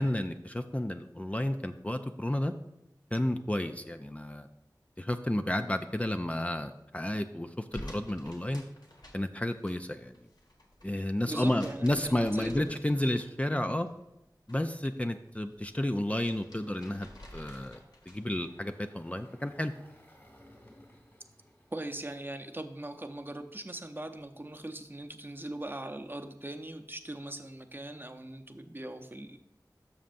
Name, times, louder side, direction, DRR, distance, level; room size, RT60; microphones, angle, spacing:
voice 1, 0.0-2.5 3.1-4.5 5.0-8.6 9.1-10.1 10.8-13.9 14.5-17.8 18.1-19.7, left 1 dB, 20° left, 7 dB, 0.4 m, -31 dB
sound 1, 7.7-9.7 10.0-13.5 13.9-14.8 15.1-18.4, left 1 dB, 75° left, 1.5 m, -51 dB
voice 2, 11.3-13.0 13.5-13.7 21.7-29.4, right 1 dB, 30° right, 7 dB, 0.6 m, -40 dB
Engine, 18.0-23.2, equal, 35° left, 2.8 m, -60 dB
12.5 x 6.4 x 2.6 m, 0.85 s
wide cardioid pair, 50°, 7 cm